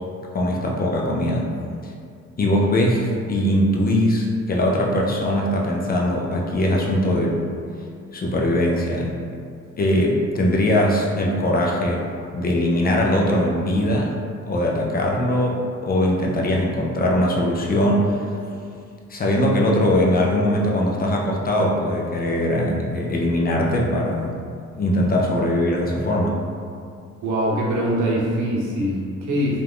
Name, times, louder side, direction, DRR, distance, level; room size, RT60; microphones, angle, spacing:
voice 1, 0.3-1.5 1.8-1.9 2.4-7.4 8.1-9.1 9.8-12.1 12.3-14.1 14.5-18.2 19.1-24.3 24.8-26.4, left 1 dB, 30° left, -2 dB, 0.4 m, -21 dB
voice 2, 27.2-29.6, equal, 80° right, -4 dB, 0.8 m, -23 dB
2.4 x 2.2 x 3.4 m, 2.3 s
cardioid pair, 90°, 30 cm